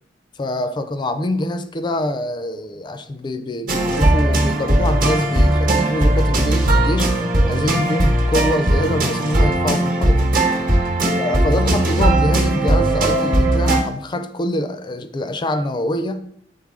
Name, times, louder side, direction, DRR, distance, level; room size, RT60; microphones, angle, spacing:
voice 1, 0.4-7.2 7.5-10.3 11.2-16.2, left 1 dB, 25° left, 0.4 m, -24 dB
sound 1, 3.7-13.8, right 1 dB, 50° right, 1.0 m, -17 dB
7.2 x 3.9 x 3.6 m
head